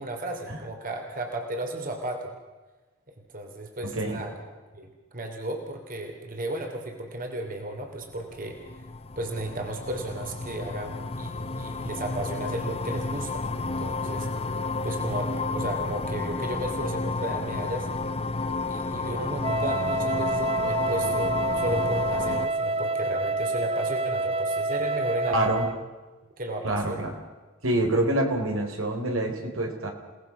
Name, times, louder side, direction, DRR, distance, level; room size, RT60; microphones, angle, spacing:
voice 1, 0.0-2.3 3.1-4.3 4.7-8.8 9.2-17.9 18.7-25.5 26.4-27.0, right 1 dB, 45° right, 3 dB, 3.2 m, -34 dB
voice 2, 3.8-4.2 25.3-25.7 26.6-27.1 27.6-29.9, right 1 dB, 80° right, 3 dB, 4.2 m, -26 dB
sound 1, 8.1-22.5, left 3 dB, 30° left, 0.9 m, -31 dB
Wind instrument woodwind instrument, 19.4-25.8, right 2 dB, 30° right, 0.7 m, -27 dB
30.0 x 19.0 x 6.1 m, 1.3 s
head